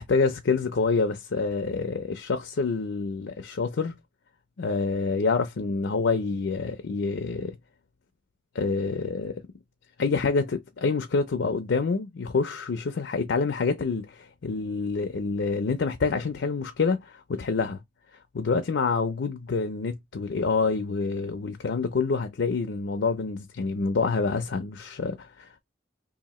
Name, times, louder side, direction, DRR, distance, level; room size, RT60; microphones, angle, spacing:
voice 1, 0.0-3.9 4.6-7.6 8.5-9.4 10.0-17.8 18.3-25.6, left 4 dB, 70° left, 0.5 m, -27 dB
2.8 x 2.6 x 4.1 m
head